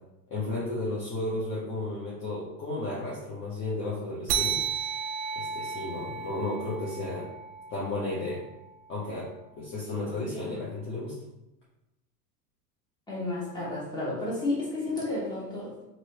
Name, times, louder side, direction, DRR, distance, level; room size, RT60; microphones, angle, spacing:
voice 1, 0.3-4.6 5.4-7.3 7.7-8.4 8.9-9.3 9.6-11.1, left 2 dB, 25° left, -6 dB, 0.8 m, -33 dB
sound 1, 4.3-9.2, right 7 dB, 75° right, 0.6 m, -34 dB
voice 2, 13.1-15.8, left 2 dB, 10° left, -6 dB, 1.3 m, -31 dB
3.1 x 2.9 x 2.8 m, 0.93 s
hypercardioid pair, 100°, 49 cm